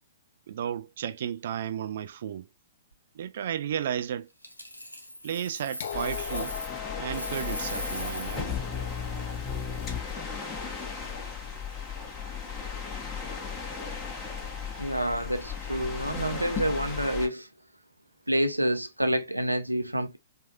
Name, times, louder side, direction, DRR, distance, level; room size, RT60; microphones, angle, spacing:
voice 1, 0.5-2.5 3.1-4.3 5.2-6.5 7.0-8.7, right 9 dB, 50° right, 0.5 m, -33 dB
Coin (dropping), 4.4-6.8 7.1-8.5 11.3-11.6, equal, 90° left, 1.0 m, -39 dB
sound 1, 5.8-11.7 12.8-12.9, left 9 dB, 55° left, 0.4 m, -41 dB
sound 2, 5.9-17.3, left 6 dB, 20° left, 1.2 m, -35 dB
voice 2, 14.8-17.5 18.3-20.2, equal, 90° right, 0.8 m, -28 dB
4.7 x 2.8 x 2.2 m
figure-of-eight pair, 115°, 0 cm